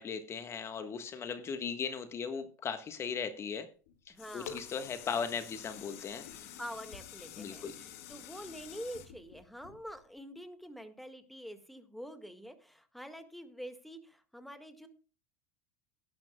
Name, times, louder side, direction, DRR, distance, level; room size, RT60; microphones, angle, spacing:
voice 1, 0.0-3.7 4.1-6.6 7.4-7.7, left 6 dB, 35° left, 9 dB, 1.4 m, -38 dB
sound 1, 3.9-10.2 10.7-10.8, left 9 dB, 70° left, 1.7 m, -49 dB
voice 2, 4.1-4.6 6.6-14.9, equal, ahead, 9 dB, 1.8 m, -46 dB
18.5 x 10.5 x 2.3 m, 0.36 s
hypercardioid pair, 80°, 8 cm